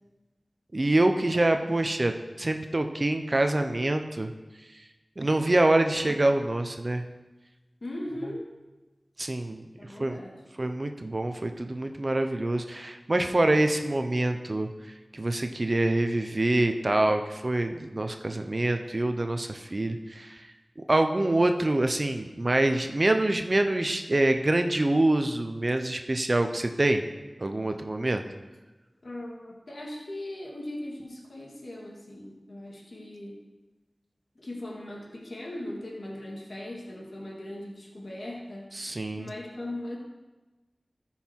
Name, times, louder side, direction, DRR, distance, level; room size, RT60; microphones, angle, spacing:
voice 1, 0.7-4.3 5.2-7.0 9.2-9.6 10.0-10.2 10.6-14.7 15.1-20.5 20.8-27.0 27.4-28.2 38.7-39.3, right 2 dB, 50° right, 6 dB, 0.8 m, -25 dB
voice 2, 7.8-8.5 9.8-10.4 29.0-33.4 34.4-40.0, left 1 dB, 70° left, -1 dB, 2.0 m, -39 dB
13.5 x 5.7 x 4.6 m, 1.2 s
wide cardioid pair, 50°, 0 cm